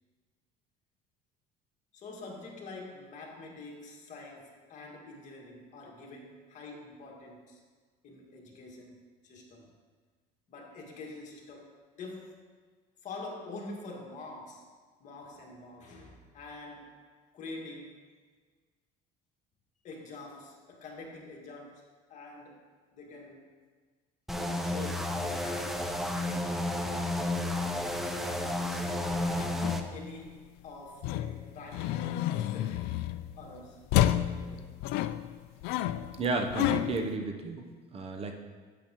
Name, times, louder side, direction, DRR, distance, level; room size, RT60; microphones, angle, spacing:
voice 1, 1.9-7.6 8.0-9.0 9.2-9.7 10.5-12.4 13.0-14.7 15.0-17.1 17.3-18.0 19.8-23.5 24.6-26.7 27.5-29.4 29.9-33.0 33.4-34.7, left 3 dB, 45° left, 0 dB, 2.0 m, -46 dB
sound 1, 24.3-29.8, left 1 dB, ahead, 0.6 m, -32 dB
sound 2, 29.0-30.5 31.0-33.5 33.9-37.1, left 13 dB, 75° left, 0.4 m, -31 dB
voice 2, 36.1-37.6 37.9-38.3, right 3 dB, 35° right, 4 dB, 0.8 m, -32 dB
11.0 x 8.2 x 3.0 m, 1.5 s
cardioid pair, 130°, 17 cm